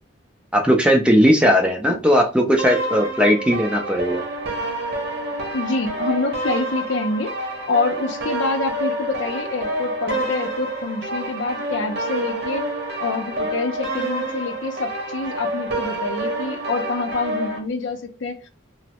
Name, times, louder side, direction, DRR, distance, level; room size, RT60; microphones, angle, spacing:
voice 1, 0.5-4.2, equal, 5° right, 0.4 m, -17 dB
sound 1, 2.6-17.6, right 1 dB, 55° right, 0.8 m, -28 dB
voice 2, 5.5-7.4 7.7-12.7 13.0-18.5, left 3 dB, 70° left, 0.5 m, -26 dB
3.1 x 2.0 x 2.8 m
head